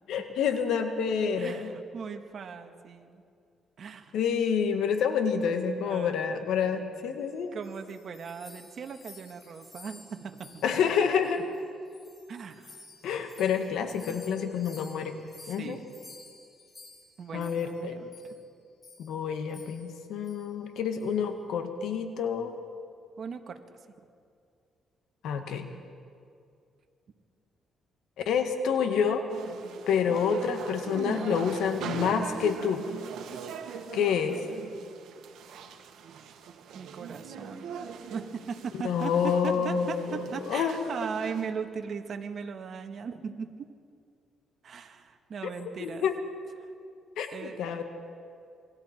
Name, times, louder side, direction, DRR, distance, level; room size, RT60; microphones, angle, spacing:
voice 1, 0.1-1.7 4.1-7.5 10.6-11.4 13.0-15.2 15.5-15.8 17.3-17.9 19.0-22.6 25.2-25.7 28.3-29.2 29.9-32.9 33.9-34.4 38.8-40.1 40.5-40.8 45.8-46.1 47.2-47.8, left 7 dB, 80° left, 6 dB, 1.8 m, -28 dB
voice 2, 1.4-3.2 3.8-4.2 5.8-7.2 7.5-10.8 12.3-12.8 15.4-16.0 17.2-18.4 23.2-24.1 36.7-37.8 38.1-43.7 44.6-46.1 46.6-46.7 47.3-47.6, right 6 dB, 55° right, 6 dB, 1.7 m, -39 dB
sound 1, 7.3-11.6 11.9-17.8 18.1-18.4 18.8-19.1 19.5-20.0 20.2-20.4 20.9-21.2, left 3 dB, 25° left, 4.5 m, -53 dB
sound 2, 29.3-41.5, right 7 dB, 80° right, 1.8 m, -41 dB
27.5 x 23.0 x 4.5 m, 2.4 s
cardioid pair, 90°, 0 cm